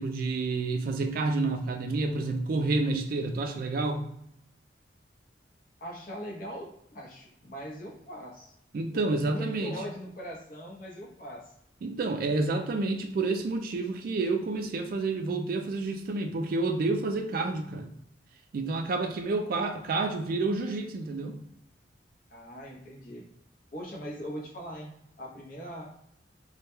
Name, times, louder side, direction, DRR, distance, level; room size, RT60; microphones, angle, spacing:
voice 1, 0.0-4.0 8.7-9.8 11.8-17.9 18.5-21.4, right 3 dB, 55° right, 6 dB, 0.3 m, -29 dB
voice 2, 5.8-8.5 9.1-11.5 22.3-23.3 23.7-24.9 25.2-25.9, equal, 50° left, -2 dB, 0.6 m, -41 dB
2.2 x 2.1 x 2.9 m, 0.75 s
head